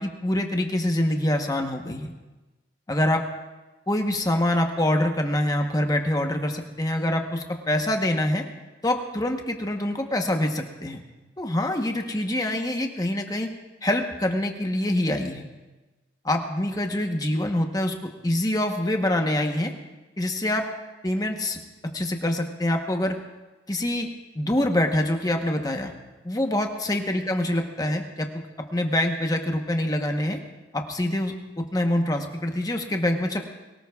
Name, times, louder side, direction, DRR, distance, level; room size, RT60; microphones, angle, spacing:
voice 1, 0.0-2.1 2.9-3.2 3.9-8.4 8.8-11.0 11.4-13.5 13.8-15.5 16.2-19.7 20.2-20.7 21.0-21.6 21.9-23.2 23.7-24.1 24.3-25.9 26.2-28.3 28.7-30.4 30.7-33.4, left 1 dB, 20° left, 4 dB, 1.0 m, -25 dB
22.5 x 18.5 x 2.4 m, 1.1 s
head